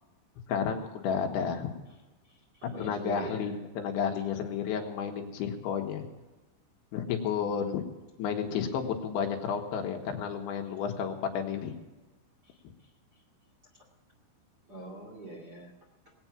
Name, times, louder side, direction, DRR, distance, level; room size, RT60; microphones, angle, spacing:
voice 1, 0.5-1.7 2.8-6.0 6.9-7.8 8.2-11.7, left 7 dB, 75° left, 3 dB, 3.5 m, -31 dB
voice 2, 2.6-3.5 7.3-7.5 14.7-15.7, right 2 dB, 35° right, -2 dB, 1.7 m, -42 dB
19.5 x 8.8 x 5.8 m, 1.1 s
omnidirectional pair, 5.7 m